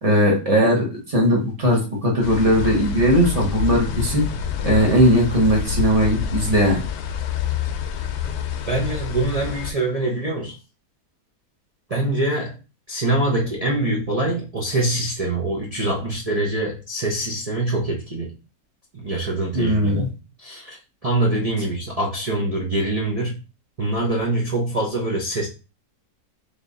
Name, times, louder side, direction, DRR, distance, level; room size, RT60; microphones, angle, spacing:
voice 1, 0.0-4.3 4.6-6.8 19.5-20.1, equal, 25° right, -1 dB, 1.1 m, -18 dB
sound 1, 2.2-9.7, left 7 dB, 85° left, 1.2 m, -27 dB
voice 2, 8.7-10.5 11.9-12.5 12.9-18.3 18.9-23.4 23.8-25.5, right 2 dB, 70° right, -3 dB, 0.3 m, -24 dB
3.6 x 2.8 x 3.7 m, 0.31 s
omnidirectional pair, 1.8 m